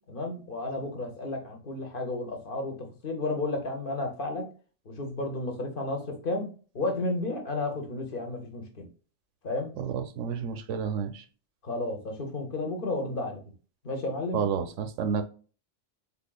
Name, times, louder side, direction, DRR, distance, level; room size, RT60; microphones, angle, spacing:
voice 1, 0.1-2.7 3.0-4.5 4.9-6.5 6.7-8.9 9.4-9.7 11.6-13.4 13.8-14.4, left 2 dB, 50° left, 0.9 m, -32 dB
voice 2, 9.8-11.2 14.3-15.2, right 7 dB, 85° right, 0.9 m, -30 dB
3.7 x 3.5 x 2.2 m
omnidirectional pair, 1.2 m